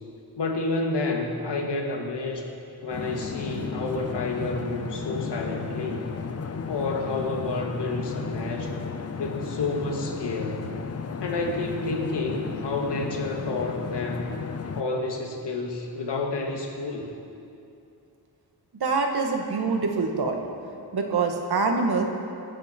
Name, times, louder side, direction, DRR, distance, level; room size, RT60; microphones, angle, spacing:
voice 1, 0.4-2.5 2.8-6.1 6.7-8.8 9.2-10.7 11.2-14.3 14.8-17.1, left 3 dB, 90° left, 1 dB, 2.1 m, -30 dB
sound 1, 2.9-14.8, left 5 dB, 40° left, 0.7 m, -34 dB
voice 2, 18.7-20.4 20.9-22.0, right 4 dB, 65° right, 2 dB, 1.8 m, -25 dB
25.5 x 9.6 x 4.5 m, 2.6 s
wide cardioid pair, 145°, 40 cm